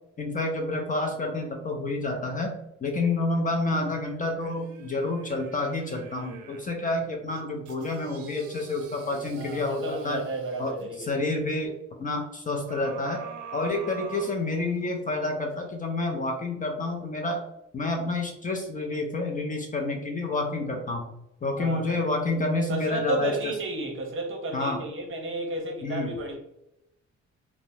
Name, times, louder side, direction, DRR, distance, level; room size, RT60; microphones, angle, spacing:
voice 1, 0.2-2.5 2.8-10.2 10.6-11.7 12.0-13.2 13.5-17.4 17.7-21.0 21.4-23.5 24.5-24.8 25.8-26.1, left 2 dB, 25° left, 0.4 m, -29 dB
sound 1, 3.6-6.8 7.3-10.9 12.7-15.0 15.5-15.6, right 6 dB, 80° right, 0.5 m, -45 dB
voice 2, 9.4-11.1 21.6-22.1 22.7-26.4, right 2 dB, 45° right, 0.8 m, -32 dB
2.9 x 2.0 x 2.6 m
cardioid pair, 90°, 30 cm